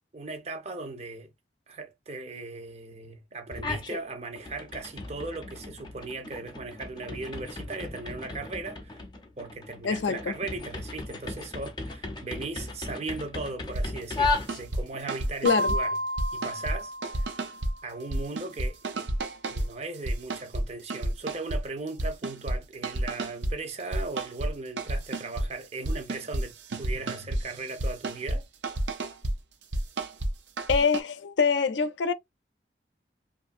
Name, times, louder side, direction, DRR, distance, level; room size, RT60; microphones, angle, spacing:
voice 1, 0.1-1.3 1.7-9.0 9.4-16.0 16.3-17.5 17.8-19.1 19.5-28.5, right 3 dB, 35° right, 0.6 m, -38 dB
sound 1, 3.5-4.0 4.4-15.0, left 3 dB, 25° left, 0.5 m, -36 dB
voice 2, 9.8-10.3 15.4-15.7 30.7-32.1, left 5 dB, 80° left, 0.4 m, -24 dB
sound 2, 13.7-13.9 14.2-14.8 15.1-15.8 16.2-16.8 17.0-17.7 18.1-19.7 20.1-20.7 20.9-21.6 21.9-22.6 22.8-23.5 23.9-24.5 24.8-25.5 25.8-26.5 26.7-28.4 28.6-29.3 29.7-30.3 30.6-31.0, right 1 dB, 80° right, 0.6 m, -30 dB
sound 3, 15.5-18.0, equal, 55° right, 0.9 m, -32 dB
2.7 x 2.5 x 2.4 m
head